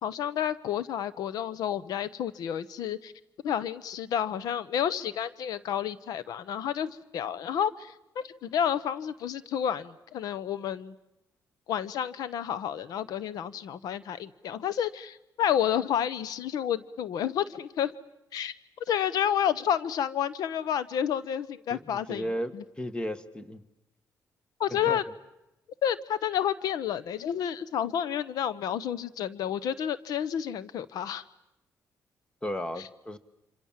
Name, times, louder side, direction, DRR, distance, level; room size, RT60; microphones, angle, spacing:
voice 1, 0.0-3.1 3.4-10.9 11.7-17.9 18.3-18.5 18.9-22.2 22.5-22.6 24.6-25.0 25.8-31.2, left 9 dB, 85° left, 17 dB, 1.0 m, -30 dB
voice 2, 21.7-23.6 24.7-25.0 32.4-33.2, equal, 15° left, 13 dB, 1.6 m, -35 dB
27.0 x 27.0 x 7.5 m, 0.90 s
cardioid pair, 110°, 6 cm